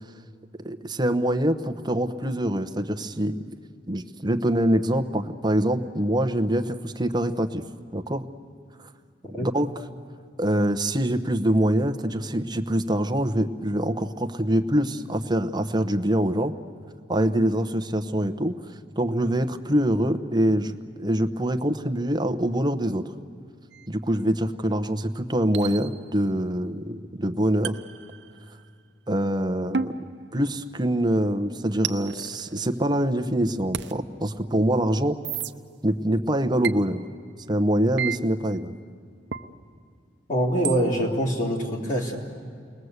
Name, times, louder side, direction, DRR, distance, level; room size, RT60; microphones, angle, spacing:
voice 1, 0.6-3.4 3.9-7.6 7.9-8.2 8.8-8.9 9.4-9.7 10.4-16.5 17.1-18.5 19.0-23.1 23.9-27.8 29.1-29.9 30.3-35.2 35.8-37.0 37.5-38.8, right 1 dB, 25° right, 7 dB, 1.0 m, -24 dB
sound 1, 23.7-23.9 25.5-26.3 27.6-28.7 29.7-31.0 31.8-33.2 33.7-33.9 35.2-35.5 36.6-36.8 38.0-38.2 39.3-39.5 40.6-40.8, right 7 dB, 65° right, 0.8 m, -33 dB
voice 2, 40.3-42.2, equal, 45° left, -2 dB, 3.1 m, -24 dB
29.5 x 21.0 x 8.1 m, 2.3 s
head